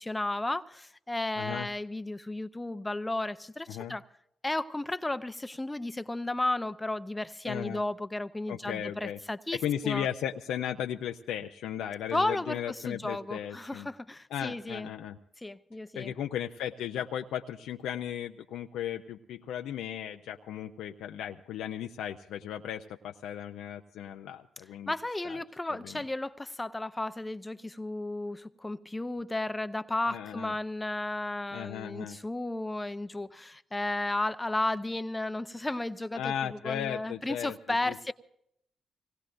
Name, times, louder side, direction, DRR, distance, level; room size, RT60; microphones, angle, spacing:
voice 1, 0.0-4.0 4.4-9.6 9.8-10.1 12.1-14.9 15.4-16.1 24.9-38.1, left 2 dB, 20° left, 0.6 m, -33 dB
voice 2, 1.4-1.7 3.7-4.0 7.5-7.8 8.5-9.2 9.5-13.9 14.3-15.2 15.9-24.9 25.2-25.4 25.8-26.0 30.1-30.5 31.5-32.2 36.1-37.6 37.9-38.1, left 10 dB, 85° left, 0.5 m, -36 dB
25.0 x 18.5 x 2.6 m
supercardioid pair, 55°, 0 cm